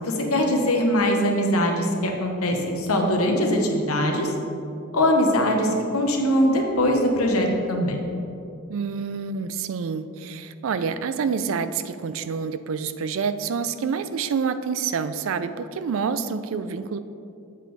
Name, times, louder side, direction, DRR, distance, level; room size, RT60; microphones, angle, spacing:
voice 1, 0.0-4.3 4.9-8.0, equal, 75° left, 2 dB, 1.0 m, -22 dB
voice 2, 8.7-17.0, right 6 dB, 65° right, 12 dB, 0.4 m, -27 dB
7.8 x 7.3 x 3.4 m, 2.7 s
head